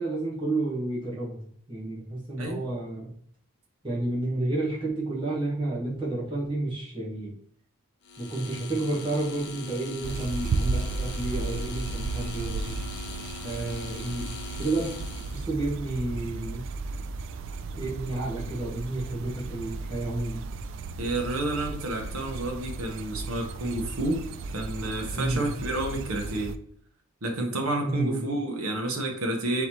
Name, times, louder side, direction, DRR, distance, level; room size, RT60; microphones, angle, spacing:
voice 1, 0.0-3.1 3.8-7.3 8.2-12.8 13.4-14.3 14.6-16.6 17.8-20.4 25.1-25.5 27.8-28.2, right 2 dB, 20° right, -6 dB, 1.3 m, -31 dB
sound 1, 8.0-15.5, left 4 dB, 50° left, 0.6 m, -41 dB
sound 2, 10.0-26.6, right 3 dB, 60° right, 0.3 m, -35 dB
voice 2, 21.0-24.2 24.5-26.6 27.2-29.7, right 2 dB, 75° right, 2 dB, 1.1 m, -30 dB
4.0 x 4.0 x 2.9 m, 0.62 s
head